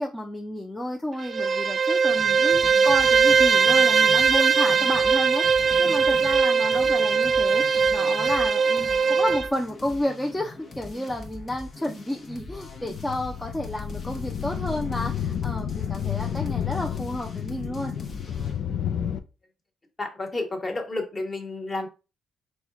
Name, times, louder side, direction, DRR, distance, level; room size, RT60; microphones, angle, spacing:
voice 1, 0.0-18.0, left 1 dB, 10° left, 1 dB, 0.6 m, -31 dB
Bowed string instrument, 1.2-9.5, right 5 dB, 45° right, 0.3 m, -20 dB
sound 1, 2.1-18.6, left 2 dB, 45° left, 1.0 m, -42 dB
sound 2, 12.3-19.2, left 9 dB, 70° left, 0.5 m, -31 dB
voice 2, 20.0-21.9, left 2 dB, 25° left, 3 dB, 1.4 m, -31 dB
4.1 x 2.3 x 4.6 m, 0.30 s
cardioid pair, 90°, 0 cm